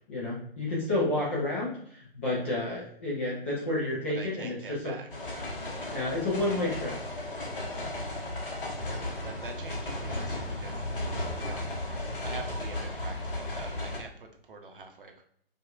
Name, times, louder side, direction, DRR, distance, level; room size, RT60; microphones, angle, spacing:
voice 1, 0.1-4.9 5.9-6.9, left 2 dB, 10° left, -6 dB, 0.4 m, -30 dB
voice 2, 2.4-2.7 4.1-5.1 7.8-8.3 8.8-11.7 12.2-15.2, right 4 dB, 60° right, 4 dB, 0.8 m, -46 dB
sound 1, 5.1-14.0, left 1 dB, 60° left, 1.0 m, -35 dB
4.9 x 2.4 x 2.3 m, 0.65 s
figure-of-eight pair, 130°, 30 cm